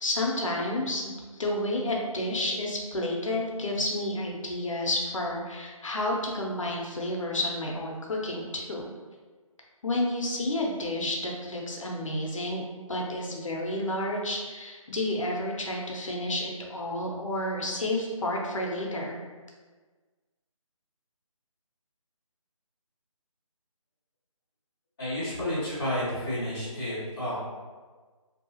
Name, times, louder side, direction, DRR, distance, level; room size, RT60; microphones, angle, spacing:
voice 1, 0.0-8.9 9.8-12.6 12.9-19.2, left 1 dB, 65° left, -1 dB, 0.6 m, -30 dB
voice 2, 25.0-27.4, left 1 dB, 5° left, -20 dB, 0.5 m, -31 dB
2.7 x 2.3 x 2.7 m, 1.4 s
figure-of-eight pair, 170°, 18 cm